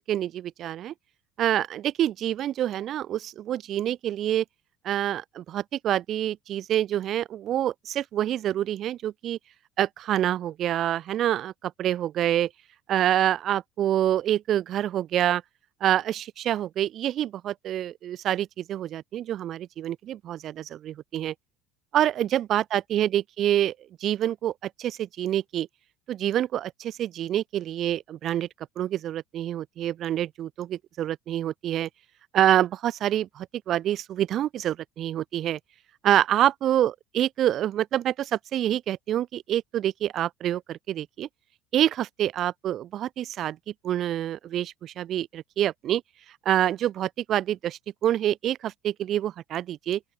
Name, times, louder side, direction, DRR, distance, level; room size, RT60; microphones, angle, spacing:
voice 1, 0.1-0.9 1.4-4.4 4.8-9.4 9.8-12.5 12.9-15.4 15.8-21.3 21.9-23.7 24.0-25.7 26.1-28.5 28.8-31.9 32.3-35.6 36.0-41.3 41.7-43.6 43.8-46.0 46.4-50.0, right 11 dB, 35° right, 1.1 m, -26 dB
open air
cardioid pair, 165°, 0 cm